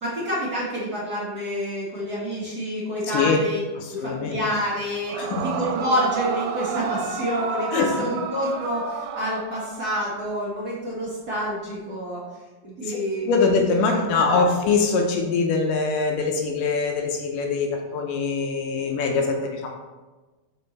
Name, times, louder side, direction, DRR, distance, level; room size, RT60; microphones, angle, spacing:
voice 1, 0.0-3.6 3.9-12.2 12.6-13.4 13.9-14.5, equal, 50° right, -7 dB, 1.1 m, -28 dB
voice 2, 3.8-4.4 5.1-5.5 7.7-8.1 12.8-13.0 13.2-19.7, left 4 dB, 75° left, 1 dB, 2.1 m, -23 dB
Yell / Screaming, 5.1-10.0, right 5 dB, 85° right, 2.5 m, -30 dB
7.5 x 5.4 x 4.0 m, 1.2 s
omnidirectional pair, 4.4 m